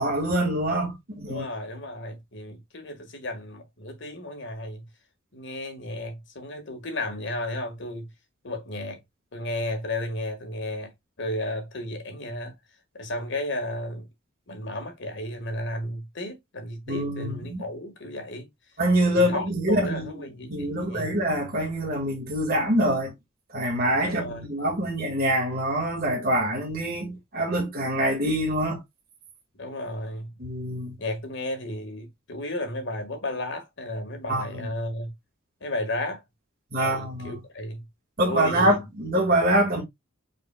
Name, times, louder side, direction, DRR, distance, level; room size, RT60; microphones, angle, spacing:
voice 1, 0.0-1.4 16.9-17.6 18.8-20.1 20.5-23.1 23.5-28.8 30.4-30.9 34.3-34.4 36.7-37.3 38.2-39.8, right 1 dB, 45° right, 1.7 m, -25 dB
voice 2, 1.3-4.8 5.3-8.1 8.4-9.0 9.3-10.9 11.2-12.5 12.9-14.1 14.5-18.5 19.1-21.1 24.0-24.4 29.5-30.3 31.0-35.1 35.6-36.2 36.8-37.8 38.2-38.8, left 1 dB, 60° left, 1.5 m, -33 dB
5.4 x 4.2 x 2.2 m
head